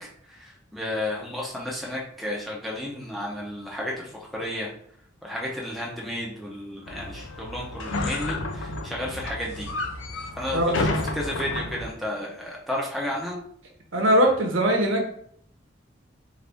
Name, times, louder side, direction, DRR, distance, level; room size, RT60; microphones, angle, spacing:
voice 1, 0.0-4.7 5.2-9.7 10.4-13.4, left 1 dB, ahead, -4 dB, 0.7 m, -32 dB
sound 1, 6.9-11.9, left 2 dB, 85° left, 0.5 m, -31 dB
voice 2, 10.5-10.9 13.9-15.0, equal, 90° right, 2 dB, 0.9 m, -21 dB
4.0 x 2.7 x 3.4 m, 0.65 s
head